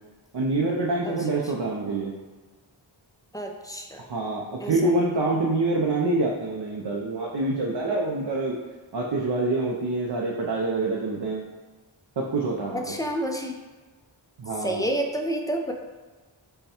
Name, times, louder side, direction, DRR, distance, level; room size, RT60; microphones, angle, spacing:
voice 1, 0.3-2.1 4.1-8.6 8.9-11.5 12.2-13.0 14.4-14.9, right 2 dB, 60° right, -2 dB, 0.6 m, -26 dB
voice 2, 3.3-4.0 4.6-4.7 12.7-13.6 14.6-15.7, right 1 dB, 10° left, 2 dB, 0.5 m, -29 dB
5.5 x 2.2 x 4.3 m, 1.3 s
wide cardioid pair, 65°, 48 cm